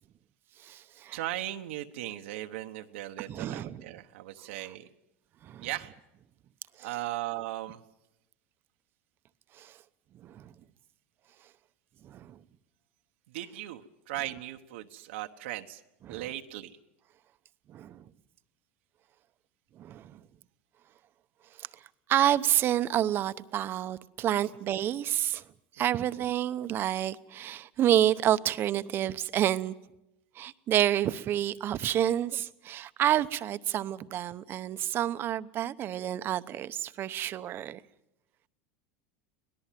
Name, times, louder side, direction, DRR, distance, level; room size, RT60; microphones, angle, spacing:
voice 1, 0.6-1.2 3.3-3.8 5.4-5.7 6.8-6.9 9.5-9.8 10.1-10.5 12.0-12.4 16.1-16.2 17.7-18.0 19.8-20.2 21.6-21.8 22.1-25.4 25.7-29.7 30.3-37.8, right 11 dB, 35° right, 0.8 m, -29 dB
voice 2, 1.1-4.9 5.6-5.9 6.8-7.8 13.3-15.8 16.1-16.8, right 15 dB, 80° right, 1.1 m, -37 dB
25.0 x 18.5 x 7.5 m
supercardioid pair, 130°, 6 cm